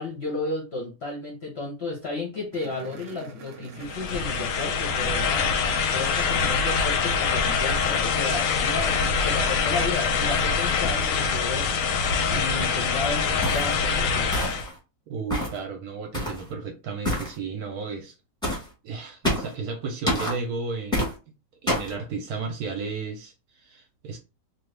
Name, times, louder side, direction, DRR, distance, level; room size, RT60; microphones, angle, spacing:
voice 1, 0.0-11.9 12.3-14.3, left 3 dB, 55° left, 0.7 m, -33 dB
sound 1, 2.5-14.6, right 4 dB, 90° right, 0.6 m, -43 dB
sound 2, 3.8-14.7, left 5 dB, 90° left, 1.3 m, -24 dB
sound 3, 13.4-13.7 14.3-14.7 15.3-15.6 16.1-16.4 17.0-17.3 18.4-18.7 19.2-19.5 20.1-20.4 20.9-21.1 21.7-21.9, left 1 dB, 5° left, 0.9 m, -27 dB
voice 2, 15.1-18.1 18.8-21.1 21.6-24.2, right 4 dB, 70° right, 1.0 m, -33 dB
3.0 x 2.3 x 3.2 m
omnidirectional pair, 1.9 m